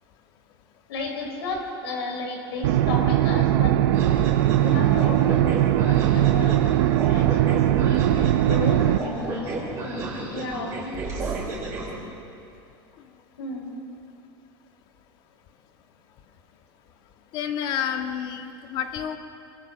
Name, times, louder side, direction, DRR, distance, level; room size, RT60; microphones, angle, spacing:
voice 1, 0.9-3.8 4.6-6.6 6.8-11.3 13.4-13.7, left 2 dB, 85° left, 1 dB, 6.0 m, -33 dB
sound 1, 2.6-9.0, right 13 dB, 60° right, 0.6 m, -20 dB
sound 2, 3.9-11.9, right 3 dB, 20° right, 5.5 m, -32 dB
voice 2, 17.3-19.2, left 9 dB, 40° left, 5 dB, 1.7 m, -29 dB
27.5 x 15.0 x 7.4 m, 2.6 s
supercardioid pair, 160°, 13 cm